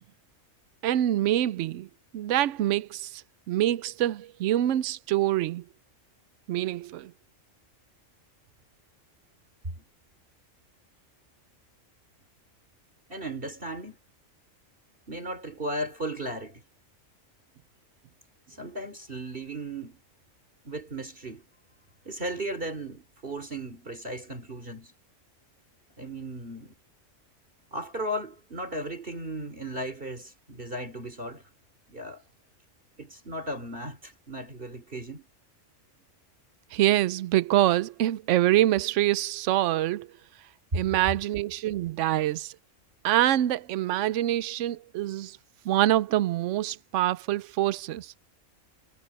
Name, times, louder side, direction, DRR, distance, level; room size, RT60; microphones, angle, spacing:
voice 1, 0.8-1.9 2.1-3.2 3.5-5.6 6.5-7.1 36.7-40.1 40.7-42.5 43.0-45.4 45.6-48.1, right 13 dB, 75° right, 0.9 m, -25 dB
voice 2, 13.1-14.0 15.1-16.6 18.5-20.0 20.6-21.5 22.1-24.9 26.0-26.7 27.7-31.5 31.9-32.2 33.0-35.3, right 1 dB, 45° right, 3.6 m, -36 dB
omnidirectional pair, 1.3 m